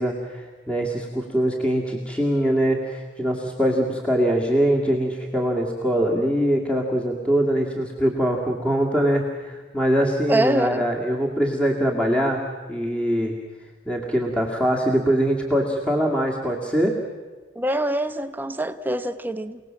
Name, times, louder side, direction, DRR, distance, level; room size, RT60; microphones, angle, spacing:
voice 1, 0.0-12.4 12.7-13.4 13.9-17.0, equal, 5° left, -1 dB, 2.1 m, -23 dB
voice 2, 10.3-10.8 17.5-19.6, right 1 dB, 10° right, 9 dB, 0.9 m, -24 dB
29.0 x 19.0 x 7.5 m, 1.4 s
head